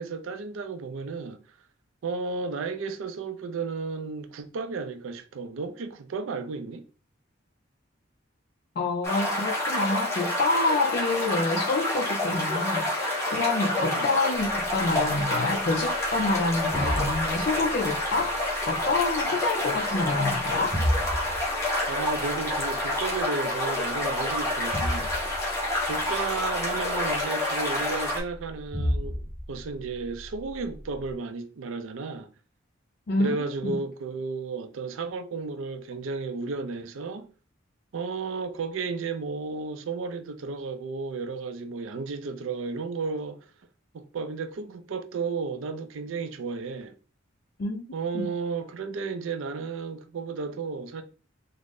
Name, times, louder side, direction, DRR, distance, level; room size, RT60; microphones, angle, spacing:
voice 1, 0.0-1.4 2.0-6.8 13.8-14.1 21.9-25.1 25.9-32.3 33.2-37.3 37.9-43.5 43.9-46.9 47.9-51.0, right 4 dB, 90° right, 0.4 m, -33 dB
voice 2, 8.8-18.3 18.7-20.8 33.1-33.8 47.6-47.9 48.1-48.3, left 3 dB, 50° left, 0.4 m, -27 dB
sound 1, 9.0-28.2, left 1 dB, 15° left, 1.0 m, -28 dB
sound 2, 14.3-31.1, equal, 20° right, 0.9 m, -36 dB
3.7 x 2.0 x 3.6 m
head